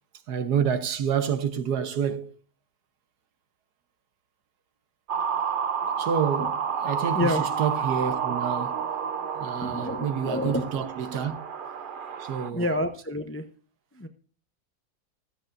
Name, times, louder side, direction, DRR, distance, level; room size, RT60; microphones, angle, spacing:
voice 1, 0.3-2.3 6.0-8.8 9.4-11.4 12.2-12.7, right 7 dB, 75° right, 1.5 m, -28 dB
sound 1, 5.1-12.5, right 7 dB, 55° right, 0.6 m, -30 dB
voice 2, 9.6-10.7 11.1-11.3 12.5-13.5 13.9-14.1, left 1 dB, 15° left, 0.4 m, -29 dB
15.0 x 14.5 x 2.6 m
omnidirectional pair, 1.7 m